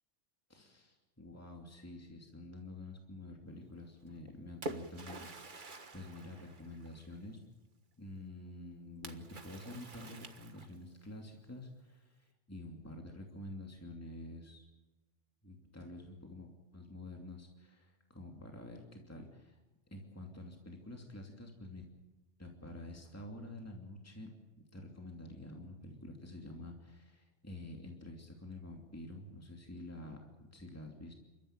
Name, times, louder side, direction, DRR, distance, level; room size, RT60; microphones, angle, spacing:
voice 1, 0.5-7.4 8.0-12.2 12.5-14.6 15.4-19.6 19.9-21.8 22.4-24.3 24.7-31.1, left 1 dB, 10° left, 1 dB, 2.8 m, -48 dB
Splash splatter, 4.1-7.2 9.0-11.0, right 2 dB, 45° right, 1.6 m, -47 dB
29.0 x 14.5 x 8.9 m, 1.2 s
omnidirectional pair, 1.2 m